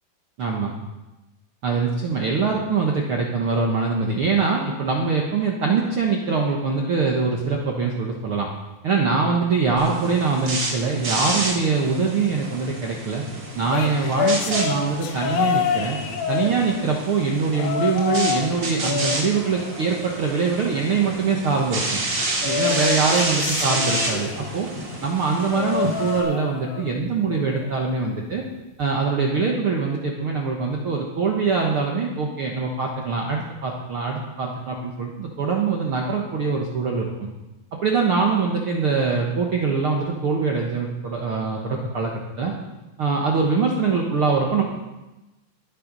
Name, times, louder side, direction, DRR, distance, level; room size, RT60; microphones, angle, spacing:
voice 1, 0.4-0.7 1.6-8.5 8.8-13.2 13.5-16.0 16.3-22.0 22.4-24.7 25.0-28.4 28.8-37.3 37.8-42.5 43.0-44.6, right 4 dB, 55° right, -1 dB, 1.5 m, -23 dB
sound 1, 9.8-26.2, right 2 dB, 35° right, 2.5 m, -30 dB
sound 2, 13.7-17.0 17.5-18.5 18.8-20.4 22.4-24.6 25.5-27.0 27.3-27.7 28.8-28.9, left 7 dB, 80° left, 2.7 m, -27 dB
21.0 x 7.7 x 5.4 m, 1.0 s
omnidirectional pair, 4.2 m